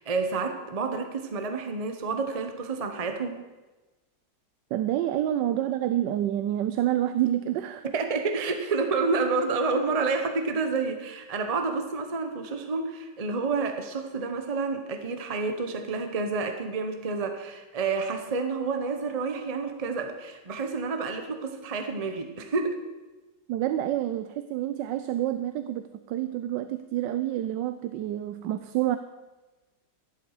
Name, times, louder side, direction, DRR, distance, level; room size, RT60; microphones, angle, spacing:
voice 1, 0.0-3.4 7.8-22.8, right 4 dB, 25° right, 6 dB, 0.9 m, -29 dB
voice 2, 4.7-7.8 23.5-29.0, right 12 dB, 85° right, 10 dB, 1.3 m, -28 dB
13.5 x 11.5 x 4.9 m, 1.2 s
omnidirectional pair, 1.9 m